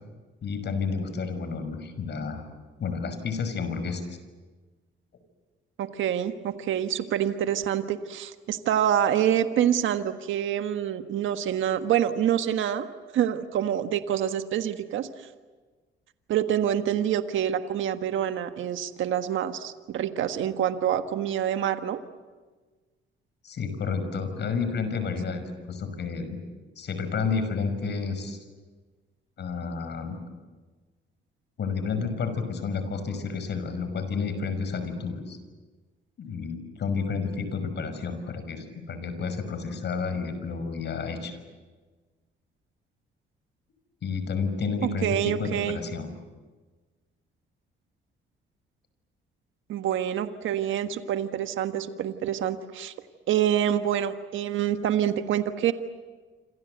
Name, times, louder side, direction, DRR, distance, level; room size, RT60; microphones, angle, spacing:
voice 1, 0.4-2.4 2.8-4.2 23.4-26.4 26.8-28.4 29.4-30.2 31.6-35.4 36.2-41.3 44.0-46.1, left 5 dB, 60° left, 10 dB, 5.7 m, -30 dB
voice 2, 5.8-12.9 13.1-15.1 16.3-22.0 45.0-45.8 49.7-52.9 53.3-55.7, right 10 dB, 75° right, 8 dB, 1.5 m, -26 dB
28.0 x 26.5 x 8.1 m, 1.3 s
cardioid pair, 90°, 20 cm